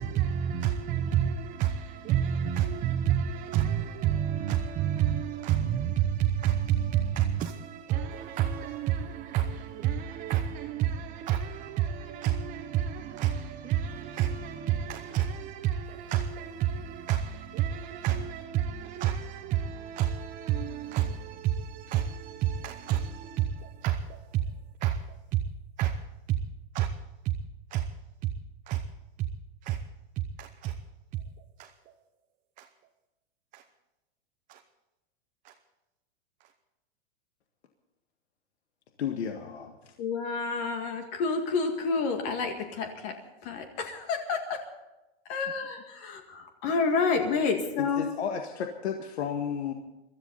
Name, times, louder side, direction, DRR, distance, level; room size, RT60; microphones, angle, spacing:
voice 1, 0.0-24.4 24.8-25.4 25.8-26.0 26.3-26.4 26.7-26.9 27.7-27.9 28.7-28.8 29.6-29.8 30.4-30.8 31.6-31.7 32.6-32.7 33.5-33.6 34.5-34.6 35.4-35.5 36.4-36.5, right 10 dB, 25° right, 0.9 m, -29 dB
voice 2, 39.0-39.9 46.7-46.8 47.8-49.7, left 7 dB, 85° left, 1.9 m, -33 dB
voice 3, 40.0-44.6 45.3-48.1, left 4 dB, 40° left, 2.0 m, -29 dB
23.5 x 14.0 x 4.1 m
supercardioid pair, 150°, 32 cm